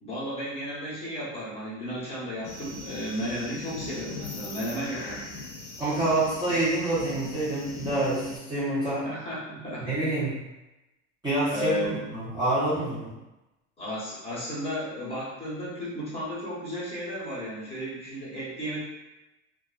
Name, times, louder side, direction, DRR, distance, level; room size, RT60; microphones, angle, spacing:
voice 1, 0.0-5.2 9.0-10.0 11.5-12.0 13.8-18.8, equal, 15° left, -9 dB, 0.9 m, -34 dB
sound 1, 2.4-8.4, left 3 dB, 55° left, 0.6 m, -40 dB
voice 2, 5.8-9.1 9.9-10.3 11.2-13.1, right 1 dB, 10° right, -11 dB, 0.8 m, -27 dB
2.5 x 2.3 x 2.4 m, 0.99 s
supercardioid pair, 135°, 35 cm